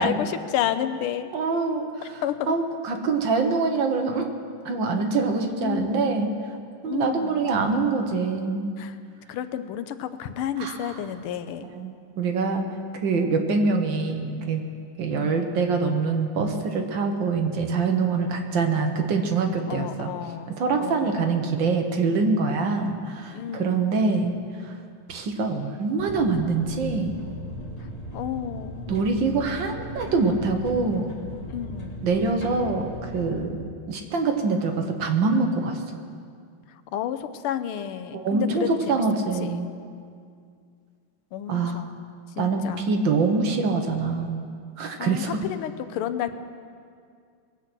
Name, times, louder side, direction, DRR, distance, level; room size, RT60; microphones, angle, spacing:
voice 1, 0.0-1.3 2.0-2.5 5.6-5.9 6.8-7.5 8.8-9.0 9.3-11.7 13.5-13.7 15.1-15.5 19.7-21.3 23.3-24.1 27.8-27.9 28.1-28.9 31.5-32.1 36.7-39.0 39.4-39.6 41.3-42.0 42.4-42.9 45.0-46.3, left 10 dB, 90° left, 11 dB, 1.6 m, -31 dB
voice 2, 1.3-1.8 2.5-4.3 4.6-6.3 6.8-8.7 10.6-10.9 11.7-12.7 13.0-14.7 15.0-20.1 20.6-24.3 24.6-24.7 25.1-27.1 28.9-31.1 32.0-33.6 33.9-35.8 38.1-39.7 41.5-41.8 42.4-44.4 44.8-45.3, right 4 dB, 65° right, 4 dB, 1.8 m, -24 dB
sound 1, 26.0-33.4, equal, 20° left, 1.7 m, -38 dB
21.5 x 8.3 x 6.1 m, 2.2 s
omnidirectional pair, 2.3 m